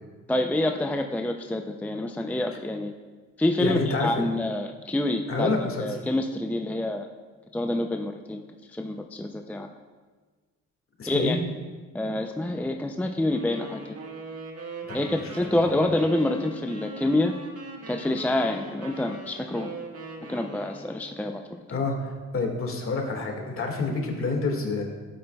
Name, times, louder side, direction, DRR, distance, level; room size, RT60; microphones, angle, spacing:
voice 1, 0.3-2.9 3.4-5.5 5.8-7.1 7.5-8.4 8.7-9.7 11.1-11.4 11.9-14.0 14.9-17.3 17.9-19.7 20.3-21.6, left 1 dB, 5° left, 4 dB, 0.4 m, -27 dB
voice 2, 3.6-4.1 5.3-5.8 11.0-11.3 15.2-15.3 21.7-24.8, left 3 dB, 45° left, 2 dB, 1.9 m, -27 dB
sound 1, 13.3-21.2, right 3 dB, 55° right, 1.6 m, -41 dB
12.5 x 8.7 x 2.3 m, 1.4 s
cardioid pair, 90°, 30 cm